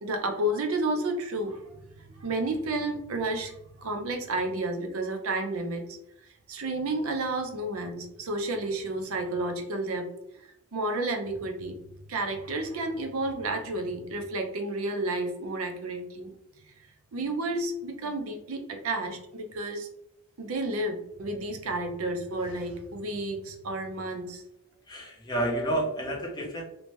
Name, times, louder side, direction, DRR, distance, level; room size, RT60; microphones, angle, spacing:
voice 1, 0.0-6.0 6.5-10.1 10.7-11.7 12.1-16.3 17.1-19.9 20.4-24.4, right 2 dB, 85° right, 5 dB, 0.5 m, -31 dB
voice 2, 24.9-26.6, right 1 dB, 20° left, -1 dB, 0.5 m, -30 dB
2.8 x 2.1 x 3.0 m, 0.80 s
head